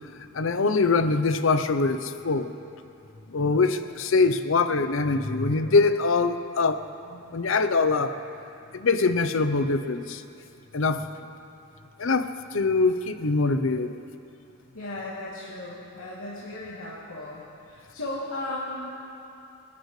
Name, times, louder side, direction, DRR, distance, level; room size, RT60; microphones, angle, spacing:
voice 1, 0.3-2.5 3.3-6.8 7.1-8.2 8.7-10.2 10.7-11.0 12.0-13.9, left 3 dB, 65° left, 10 dB, 0.7 m, -23 dB
voice 2, 14.7-18.9, left 2 dB, 85° left, -8 dB, 2.8 m, -36 dB
29.0 x 13.0 x 3.2 m, 2.7 s
head